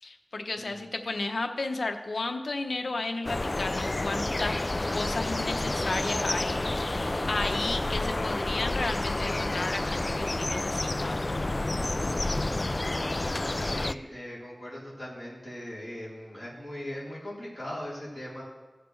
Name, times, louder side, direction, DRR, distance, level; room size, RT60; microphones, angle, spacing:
voice 1, 0.0-4.6 4.9-7.0 7.3-11.2, left 3 dB, 80° left, 6 dB, 0.8 m, -33 dB
sound 1, 3.2-13.9, left 2 dB, 40° left, 0.3 m, -29 dB
voice 2, 13.6-18.4, left 1 dB, 10° left, -9 dB, 3.9 m, -39 dB
17.0 x 6.7 x 3.2 m, 1.2 s
wide cardioid pair, 55°, 0 cm